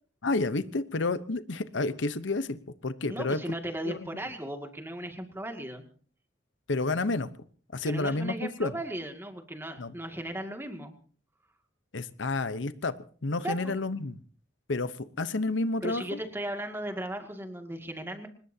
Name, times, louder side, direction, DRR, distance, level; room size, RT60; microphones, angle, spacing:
voice 1, 0.2-3.4 3.9-4.1 6.7-7.3 7.7-8.7 9.8-9.9 11.9-12.9 13.2-14.2 14.7-14.9 15.2-16.2, left 2 dB, 85° left, 13 dB, 0.9 m, -30 dB
voice 2, 3.1-5.8 7.8-10.9 13.4-13.8 15.8-18.3, right 1 dB, 10° right, 5 dB, 2.2 m, -36 dB
24.5 x 20.5 x 2.8 m, 0.43 s
head